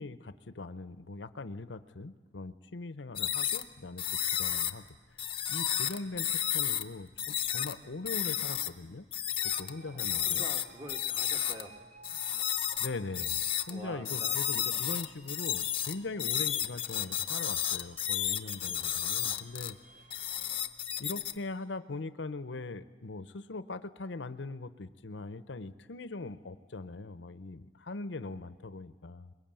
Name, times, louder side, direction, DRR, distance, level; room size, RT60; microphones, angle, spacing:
voice 1, 0.0-4.0 4.4-5.2 5.5-9.1 9.4-10.5 12.8-13.4 13.7-19.8 21.0-29.3, left 3 dB, 70° left, 13 dB, 0.8 m, -41 dB
sound 1, 3.2-3.6 4.0-4.7 5.2-6.8 7.2-7.7 8.1-8.7 9.1-9.7 10.0-11.6 12.0-13.7 14.1-19.7 20.1-21.3, left 10 dB, 30° left, 0.8 m, -32 dB
sound 2, 9.4-20.5, right 3 dB, 45° right, 1.4 m, -57 dB
voice 2, 9.8-11.8 13.7-14.9 16.5-16.7 18.5-19.4, equal, 20° right, 4 dB, 1.7 m, -48 dB
21.5 x 21.5 x 9.0 m, 1.4 s
head